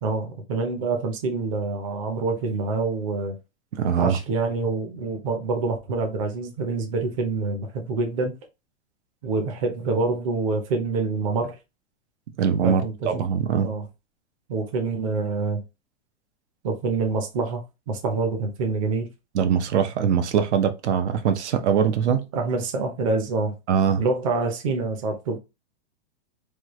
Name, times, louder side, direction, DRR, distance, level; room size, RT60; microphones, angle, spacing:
voice 1, 0.0-3.4 4.0-8.3 9.2-11.6 12.6-13.1 13.6-13.8 14.5-15.6 16.6-19.1 22.3-23.5 24.0-25.4, right 3 dB, 30° right, 0.6 m, -26 dB
voice 2, 3.7-4.2 12.4-13.7 19.3-22.3 23.7-24.0, right 7 dB, 80° right, 0.7 m, -22 dB
3.2 x 2.4 x 3.0 m
supercardioid pair, 175°, 34 cm